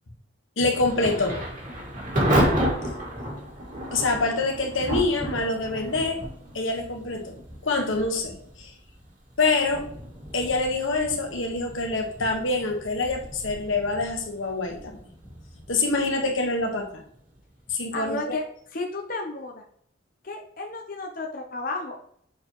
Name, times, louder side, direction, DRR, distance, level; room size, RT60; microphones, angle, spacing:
voice 1, 0.6-1.4 3.9-6.2 6.5-7.3 7.6-8.7 9.4-9.8 10.3-15.0 15.7-17.0 17.7-18.4, left 3 dB, 90° left, 2 dB, 1.4 m, -26 dB
Thunder / Rain, 0.7-17.4, equal, 40° right, 2.1 m, -32 dB
voice 2, 17.9-18.4 18.7-19.6 20.2-22.0, left 2 dB, 45° left, 2 dB, 0.7 m, -32 dB
7.3 x 4.5 x 3.0 m, 0.66 s
head